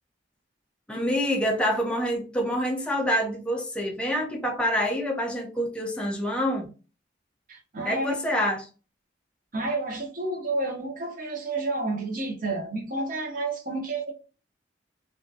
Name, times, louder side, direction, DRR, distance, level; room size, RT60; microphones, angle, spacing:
voice 1, 0.9-6.7 7.9-8.7, equal, 5° left, 0.3 m, -26 dB
voice 2, 7.5-8.1 9.5-14.1, right 2 dB, 45° right, 0.7 m, -30 dB
2.8 x 2.2 x 2.3 m
head